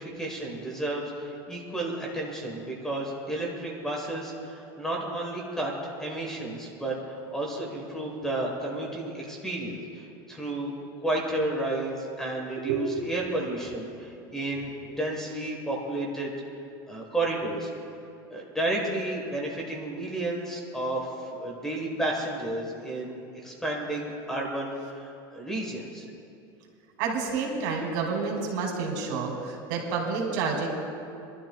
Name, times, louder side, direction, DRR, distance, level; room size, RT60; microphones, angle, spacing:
voice 1, 0.0-5.7 6.0-10.7 11.0-16.3 16.9-17.7 18.3-26.1, right 1 dB, 5° left, -1 dB, 1.3 m, -32 dB
voice 2, 12.3-13.1 27.0-30.7, right 5 dB, 65° right, 0 dB, 2.7 m, -29 dB
26.5 x 12.0 x 2.3 m, 2.6 s
supercardioid pair, 165°, 11 cm